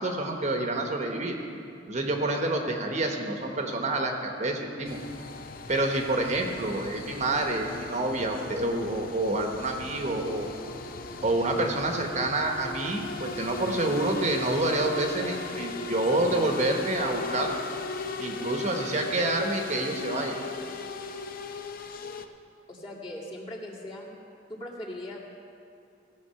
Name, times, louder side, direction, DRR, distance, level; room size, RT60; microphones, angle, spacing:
voice 1, 0.0-1.4 1.9-5.0 5.7-10.5 11.2-17.6 18.2-20.3, right 2 dB, 40° right, 3 dB, 1.0 m, -28 dB
sound 1, 4.9-22.2, left 3 dB, 50° left, 0.6 m, -37 dB
voice 2, 22.7-24.2 24.5-25.2, left 1 dB, 30° left, -5 dB, 2.1 m, -39 dB
16.5 x 7.3 x 5.7 m, 2.5 s
head